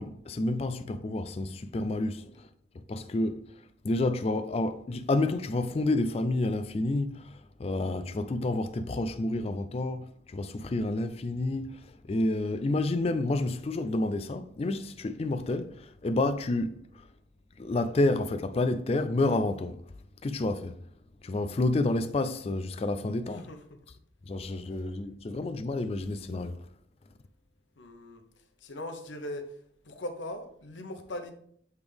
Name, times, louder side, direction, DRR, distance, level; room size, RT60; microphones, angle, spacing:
voice 1, 0.0-2.5 2.9-3.5 3.8-17.1 17.6-19.8 20.2-20.8 21.2-23.5 24.3-26.6, left 2 dB, 30° left, 0.3 m, -29 dB
voice 2, 23.3-23.8 27.8-28.2 28.6-29.5 29.8-31.3, left 1 dB, 85° left, 0.8 m, -40 dB
8.0 x 3.4 x 3.5 m
head